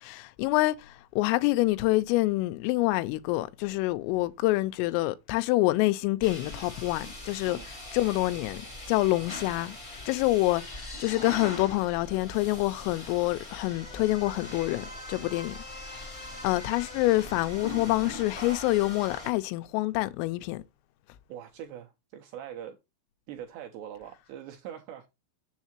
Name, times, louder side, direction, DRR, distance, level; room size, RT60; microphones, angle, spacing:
voice 1, 0.0-7.6 7.9-15.6 16.4-20.6, left 19 dB, 90° left, 3.2 m, -27 dB
sound 1, 6.2-19.3, left 2 dB, 60° left, 0.6 m, -41 dB
voice 2, 21.3-22.8 23.3-25.1, right 10 dB, 85° right, 2.5 m, -42 dB
7.3 x 7.2 x 2.9 m
omnidirectional pair, 5.7 m